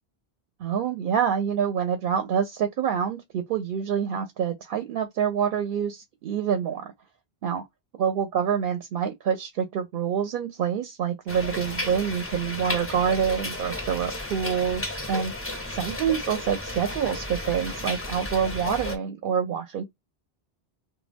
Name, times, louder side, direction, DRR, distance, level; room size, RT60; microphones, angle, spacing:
voice 1, 0.6-6.9 7.4-7.6 8.0-15.3 15.7-19.8, right 8 dB, 65° right, 0.7 m, -26 dB
sound 1, 11.3-19.0, left 1 dB, 15° left, 0.5 m, -33 dB
2.2 x 2.2 x 3.3 m
omnidirectional pair, 1.0 m